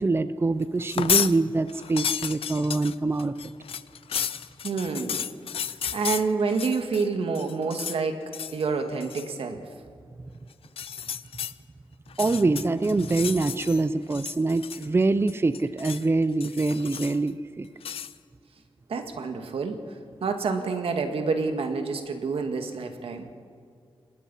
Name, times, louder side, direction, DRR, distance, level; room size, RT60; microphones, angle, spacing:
voice 1, 0.0-3.5 12.2-17.7, right 3 dB, 25° right, 13 dB, 0.6 m, -25 dB
sound 1, 0.8-1.3 1.7-7.1 7.3-8.0 8.3-8.6 9.0-9.3 10.6-11.5 12.1-13.8 14.1-15.0 15.3-16.1 16.4-17.3 17.8-18.1, left 8 dB, 90° left, 0.6 m, -32 dB
voice 2, 4.6-5.2 5.9-8.2 8.5-9.6 18.9-19.8 20.2-23.3, right 4 dB, 85° right, 6 dB, 2.0 m, -28 dB
26.0 x 20.5 x 5.6 m, 2.3 s
wide cardioid pair, 100°, 9 cm